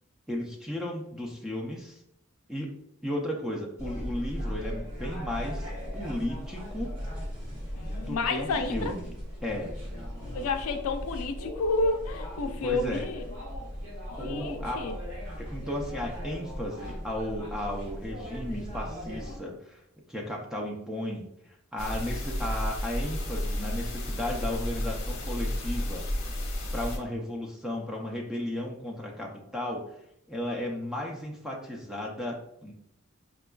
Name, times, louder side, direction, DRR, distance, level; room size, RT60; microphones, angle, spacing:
voice 1, 0.3-2.0 2.5-2.7 3.0-7.0 8.1-9.2 9.4-9.7 12.6-13.1 14.2-14.8 15.4-19.8 20.1-21.2 21.7-26.0 26.7-29.8 30.3-32.7, left 1 dB, ahead, -1 dB, 0.4 m, -34 dB
sound 1, 3.8-19.4, equal, 75° right, 1.3 m, -38 dB
voice 2, 7.8-8.9 10.3-13.4 14.2-15.0, left 3 dB, 80° left, 7 dB, 0.4 m, -30 dB
sound 2, 21.8-27.0, left 1 dB, 65° left, 0.8 m, -32 dB
4.9 x 2.3 x 2.2 m, 0.77 s
head